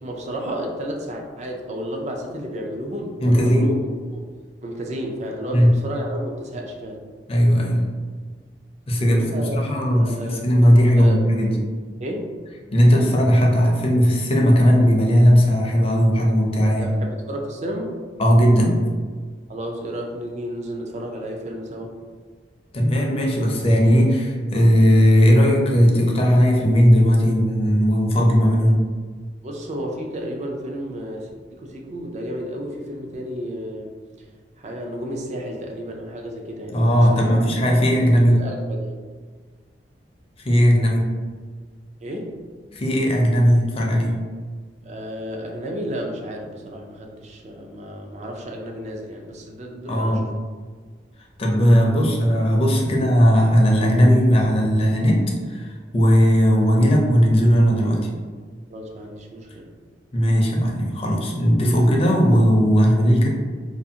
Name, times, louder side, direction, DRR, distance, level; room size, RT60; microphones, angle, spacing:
voice 1, 0.0-3.7 4.1-4.3 4.6-7.0 9.0-10.5 10.9-11.2 12.0-12.3 16.6-17.9 19.5-21.9 29.4-33.9 34.6-37.4 38.4-39.0 42.0-42.4 44.8-50.2 58.7-59.7, equal, 40° right, 1 dB, 0.4 m, -32 dB
voice 2, 3.2-3.7 5.5-5.8 7.3-7.9 8.9-11.6 12.7-16.9 18.2-18.8 22.7-28.8 36.7-38.4 40.4-41.1 42.7-44.2 49.9-50.2 51.4-55.7 55.9-58.1 60.1-63.3, equal, 35° left, -1 dB, 0.5 m, -17 dB
2.5 x 2.4 x 2.7 m, 1.5 s
head